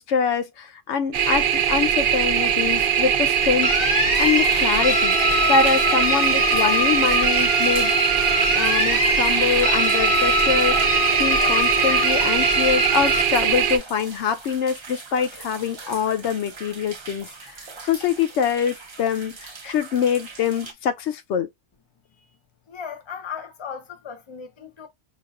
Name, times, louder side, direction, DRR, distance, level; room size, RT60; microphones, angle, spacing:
voice 1, 0.0-3.7 4.2-5.2 5.5-7.9 8.6-21.5, left 7 dB, 90° left, 0.9 m, -24 dB
sound 1, 1.1-13.8, right 8 dB, 65° right, 0.8 m, -21 dB
sound 2, 3.6-13.2, left 4 dB, 60° left, 0.8 m, -24 dB
sound 3, 4.1-20.7, right 4 dB, 35° right, 0.5 m, -40 dB
voice 2, 22.7-24.9, left 7 dB, 30° left, 0.7 m, -36 dB
5.0 x 2.4 x 2.4 m
omnidirectional pair, 1.1 m